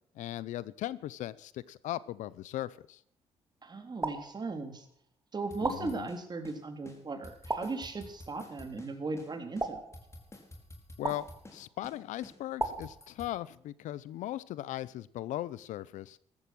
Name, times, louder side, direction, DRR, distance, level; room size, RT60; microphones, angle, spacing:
voice 1, 0.2-3.0 5.6-6.1 11.0-16.2, left 14 dB, 75° left, 20 dB, 0.7 m, -38 dB
voice 2, 3.6-4.9 5.3-9.8, right 3 dB, 35° right, 6 dB, 3.8 m, -37 dB
sound 1, 4.0-4.9 5.6-6.5 7.5-8.3 9.6-10.5 11.0-11.8 12.6-13.6, right 2 dB, 20° right, 2.7 m, -38 dB
sound 2, 5.5-6.6 6.9-7.0 7.2-8.9 9.2-9.3 9.6-11.6 11.8-12.0 12.2-13.3, left 1 dB, 20° left, 4.9 m, -50 dB
15.0 x 13.5 x 6.2 m, 0.63 s
supercardioid pair, 75°, 13 cm